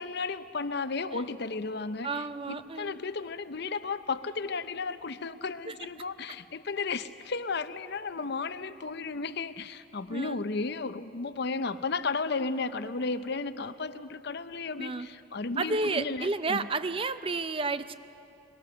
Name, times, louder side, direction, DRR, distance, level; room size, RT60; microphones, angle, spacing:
voice 1, 0.0-16.7, left 4 dB, 55° left, 12 dB, 0.7 m, -34 dB
voice 2, 2.0-3.0 5.7-5.8 10.1-10.4 14.8-15.1 15.6-17.9, right 3 dB, 25° right, 12 dB, 0.5 m, -31 dB
22.5 x 22.5 x 6.8 m, 2.8 s
head